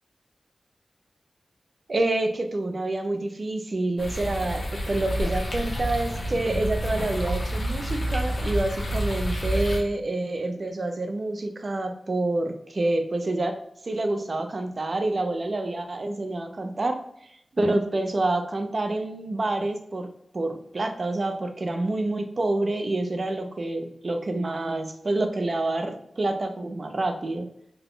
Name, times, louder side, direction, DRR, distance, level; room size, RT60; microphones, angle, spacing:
voice 1, 1.9-17.0 17.5-20.1 20.3-27.5, right 2 dB, 50° right, 6 dB, 0.5 m, -27 dB
sound 1, 4.0-9.8, equal, 55° left, 0.9 m, -29 dB
3.9 x 2.2 x 3.7 m, 0.73 s
wide cardioid pair, 90°, 0 cm